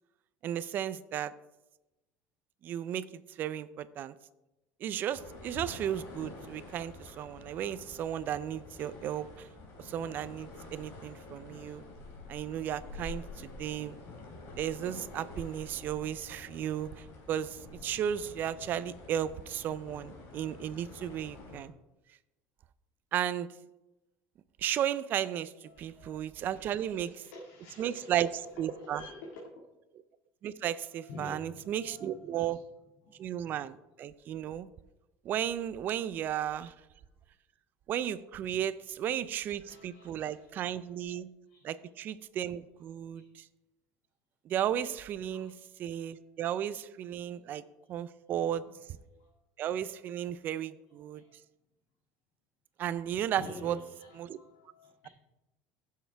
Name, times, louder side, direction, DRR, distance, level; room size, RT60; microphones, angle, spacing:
voice 1, 0.4-1.3 2.6-3.0 3.4-4.1 4.8-9.5 9.8-11.8 12.3-14.0 14.6-21.7 23.1-23.5 24.6-27.2 27.8-28.3 28.6-29.1 30.4-32.6 33.2-34.7 35.2-36.7 37.9-41.3 41.6-43.4 44.5-45.5 45.8-47.6 47.9-48.6 49.6-51.2 52.8-53.8 54.2-54.4, right 10 dB, 35° right, 0.4 m, -34 dB
sound 1, 5.1-21.6, left 2 dB, 50° left, 2.7 m, -48 dB
voice 2, 25.6-28.2 28.6-29.4 30.9-32.6 33.0-33.2 36.6-36.7 39.2-39.3 39.7-40.5 41.5-41.7 43.1-43.3 45.2-45.5 48.6-48.8 51.1-51.4 53.4-55.1, left 2 dB, 85° left, 1.8 m, -49 dB
15.0 x 6.5 x 3.4 m
cardioid pair, 160°, 6 cm